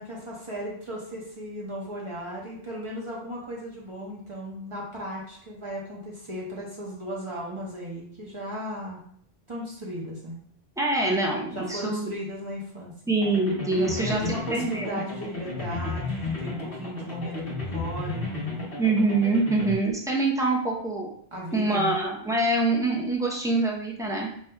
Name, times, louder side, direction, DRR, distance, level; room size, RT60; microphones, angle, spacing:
voice 1, 0.0-9.0 9.5-10.4 11.5-12.9 13.2-13.5 13.8-18.7 21.3-21.9, equal, 30° right, -4 dB, 1.1 m, -36 dB
voice 2, 10.8-12.1 13.1-15.0 18.8-21.1 21.5-24.3, right 2 dB, 5° right, -3 dB, 0.6 m, -25 dB
sound 1, 13.2-19.8, left 3 dB, 60° left, 1.4 m, -33 dB
5.3 x 2.8 x 2.2 m, 0.63 s
omnidirectional pair, 1.1 m